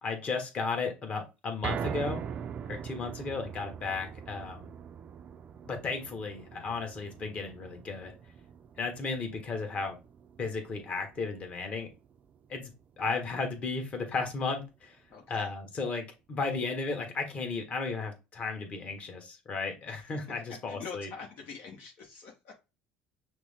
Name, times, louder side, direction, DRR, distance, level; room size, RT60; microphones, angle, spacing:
voice 1, 0.0-2.2 2.7-4.7 5.7-8.1 8.8-10.0 10.4-11.9 12.5-12.7 13.0-15.0 15.3-21.1, left 4 dB, 35° left, 3 dB, 1.5 m, -34 dB
sound 1, 1.6-13.9 14.3-14.4 14.8-14.9, right 7 dB, 40° right, 0.4 m, -42 dB
voice 2, 15.1-15.5 19.9-20.2 20.5-22.6, left 5 dB, 60° left, 0 dB, 1.0 m, -45 dB
6.0 x 2.1 x 3.5 m, 0.27 s
supercardioid pair, 105°, 4 cm